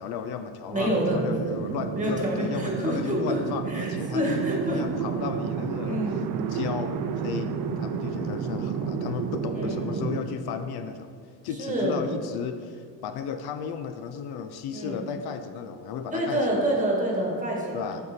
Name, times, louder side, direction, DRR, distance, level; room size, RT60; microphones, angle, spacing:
voice 1, 0.0-6.0 6.5-11.1 11.4-16.7 17.7-18.0, left 7 dB, 70° left, 8 dB, 0.5 m, -34 dB
voice 2, 0.7-1.2 1.9-3.4 3.7-4.8 5.8-6.2 9.5-9.9 11.6-12.0 14.7-15.0 16.1-18.0, right 1 dB, 20° right, -2 dB, 1.6 m, -27 dB
sound 1, 0.8-10.2, right 6 dB, 60° right, 0.6 m, -31 dB
7.7 x 5.5 x 2.7 m, 2.1 s
cardioid pair, 80°, 39 cm